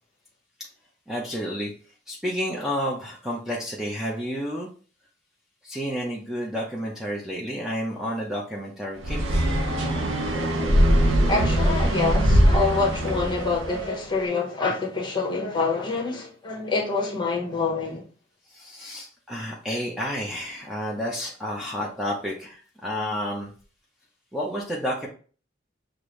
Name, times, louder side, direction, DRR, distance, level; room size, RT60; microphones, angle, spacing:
voice 1, 1.1-1.7 2.1-4.7 5.6-9.6 18.5-23.5 24.3-25.1, equal, ahead, 0.6 m, -30 dB
sound 1, 9.0-13.9, equal, 85° right, 1.0 m, -21 dB
voice 2, 11.3-18.0, left 3 dB, 25° left, 1.1 m, -26 dB
6.6 x 2.6 x 3.1 m
head